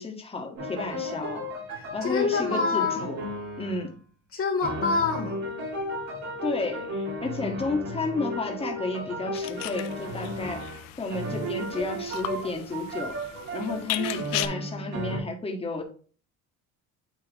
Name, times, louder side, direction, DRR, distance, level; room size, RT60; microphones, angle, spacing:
voice 1, 0.0-1.4 1.9-3.2 3.6-3.9 6.4-10.6 11.0-13.1 13.5-15.8, left 3 dB, 15° left, 2 dB, 1.6 m, -32 dB
sound 1, 0.6-3.9 4.6-10.8 11.1-15.2, equal, 55° right, 3.4 m, -34 dB
voice 2, 1.7-3.1 4.3-5.4, left 4 dB, 40° left, 1 dB, 1.4 m, -26 dB
sound 2, 9.3-14.5, left 16 dB, 80° left, 0.6 m, -37 dB
9.2 x 3.4 x 3.5 m, 0.40 s
cardioid pair, 100°, 33 cm